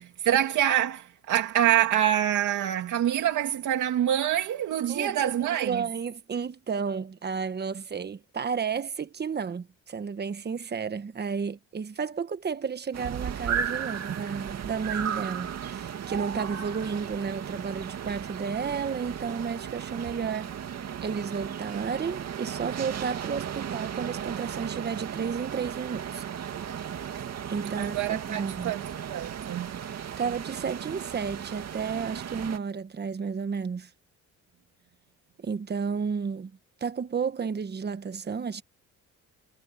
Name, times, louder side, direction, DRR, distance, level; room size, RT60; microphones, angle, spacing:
voice 1, 0.0-5.8 27.8-29.8, right 11 dB, 75° right, 2.3 m, -26 dB
voice 2, 4.9-5.3 5.6-20.5 21.0-26.2 27.5-28.7 29.8-33.9 35.4-36.5 36.8-38.6, right 6 dB, 35° right, 1.3 m, -32 dB
sound 1, 12.9-32.6, right 8 dB, 60° right, 2.3 m, -35 dB
cardioid pair, 90°, 30 cm